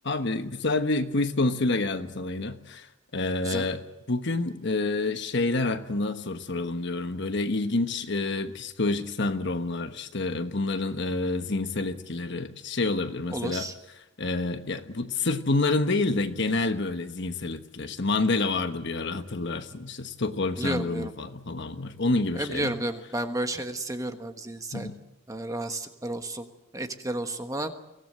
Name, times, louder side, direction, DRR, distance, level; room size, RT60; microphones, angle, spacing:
voice 1, 0.0-2.9 3.1-13.7 14.2-22.8 24.7-25.0, left 2 dB, 55° left, 8 dB, 1.2 m, -28 dB
voice 2, 13.3-13.7 20.6-21.1 22.3-24.9 25.3-26.5 26.7-27.7, right 1 dB, 15° right, 7 dB, 1.3 m, -32 dB
23.5 x 17.0 x 7.8 m, 0.95 s
head